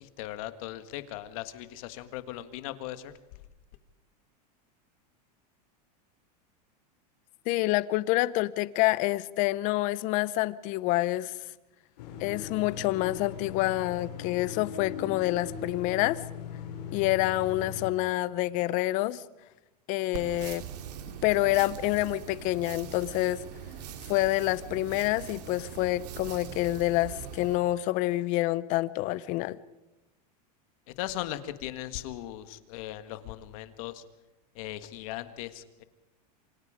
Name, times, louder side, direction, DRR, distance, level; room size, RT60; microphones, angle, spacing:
voice 1, 0.0-3.1 30.9-34.0 34.6-35.8, left 14 dB, 55° left, 1.6 m, -38 dB
voice 2, 7.5-11.3 12.2-16.2 16.9-19.2 19.9-20.6 21.2-23.4 24.1-29.6, left 17 dB, 40° left, 0.7 m, -27 dB
sound 1, 12.0-17.9, left 7 dB, 75° left, 5.5 m, -40 dB
sound 2, 20.1-27.6, right 8 dB, 75° right, 2.8 m, -42 dB
27.5 x 26.5 x 5.0 m
supercardioid pair, 160°, 21 cm